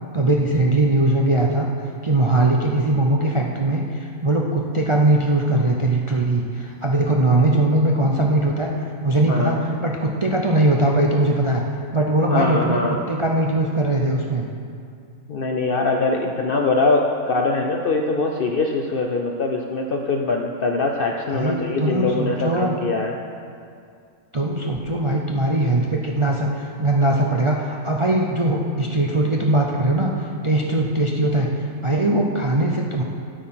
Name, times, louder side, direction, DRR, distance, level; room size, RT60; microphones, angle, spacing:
voice 1, 0.1-1.7 2.0-8.7 9.0-11.6 11.9-14.5 21.3-22.7 24.3-30.1 30.4-31.5 31.8-33.0, right 2 dB, 40° right, 0 dB, 0.4 m, -20 dB
voice 2, 9.3-9.6 12.3-13.0 15.3-23.1, left 3 dB, 55° left, 2 dB, 0.6 m, -22 dB
9.7 x 8.3 x 5.7 m, 2.4 s
omnidirectional pair, 1.5 m